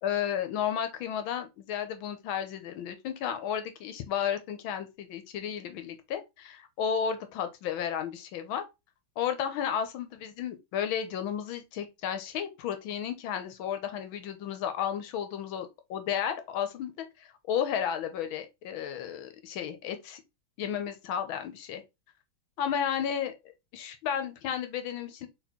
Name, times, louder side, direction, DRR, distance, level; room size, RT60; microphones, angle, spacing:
voice 1, 0.0-8.6 9.2-16.9 17.2-20.2 20.6-21.8 22.6-23.3 23.7-25.3, left 8 dB, 80° left, 1.5 m, -33 dB
4.2 x 4.2 x 2.9 m
omnidirectional pair, 2.3 m